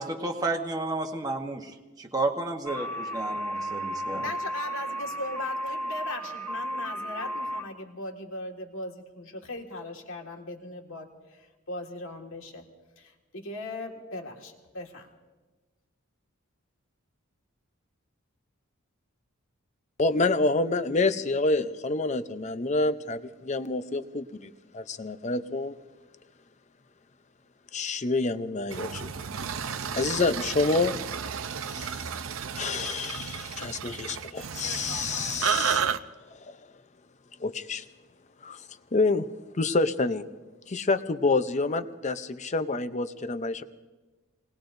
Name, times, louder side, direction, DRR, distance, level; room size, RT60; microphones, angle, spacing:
voice 1, 0.0-4.3, right 2 dB, 20° right, 2 dB, 1.1 m, -32 dB
sound 1, 2.6-7.6, equal, 10° left, 1.3 m, -33 dB
voice 2, 4.2-12.7 13.0-15.1, left 2 dB, 65° left, 2 dB, 1.8 m, -39 dB
voice 3, 20.0-25.8 27.7-29.1 29.9-31.0 31.7-32.0 32.5-35.9 36.3-36.6 37.4-37.8 38.4-38.7 38.9-39.3 39.5-40.2 40.7-43.6, left 3 dB, 35° left, 11 dB, 0.6 m, -28 dB
sound 2, 28.7-36.0, right 7 dB, 65° right, 0.6 m, -32 dB
28.5 x 19.5 x 2.6 m, 1.2 s
head